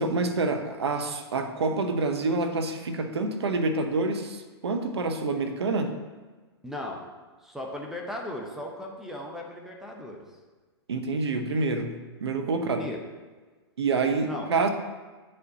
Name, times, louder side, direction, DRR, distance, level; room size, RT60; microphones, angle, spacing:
voice 1, 0.0-5.9 10.9-12.8 13.8-14.7, right 3 dB, 75° right, 6 dB, 0.7 m, -27 dB
voice 2, 6.6-7.1 7.4-10.2 12.6-13.0 14.2-14.5, left 1 dB, 5° right, -1 dB, 0.7 m, -37 dB
9.5 x 4.3 x 2.7 m, 1.3 s
hypercardioid pair, 110°, 14 cm